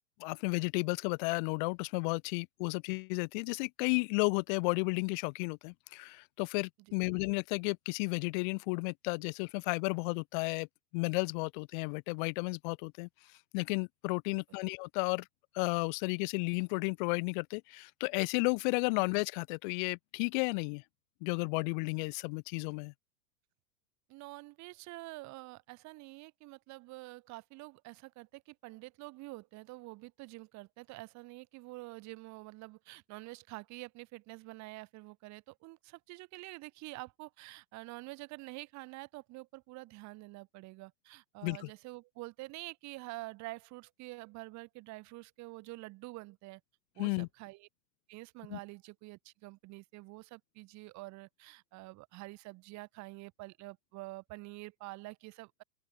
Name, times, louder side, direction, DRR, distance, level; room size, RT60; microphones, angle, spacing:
voice 1, 0.2-10.7 10.9-13.1 13.5-15.2 15.5-20.8 21.2-22.9 41.4-41.7 47.0-47.3 48.5-48.6, left 33 dB, 30° left, 0.8 m, -33 dB
voice 2, 14.3-14.6 19.0-19.1 24.1-46.6 46.9-47.7 48.1-55.6, right 22 dB, 35° right, 4.6 m, -47 dB
open air
figure-of-eight pair, 95°, 47 cm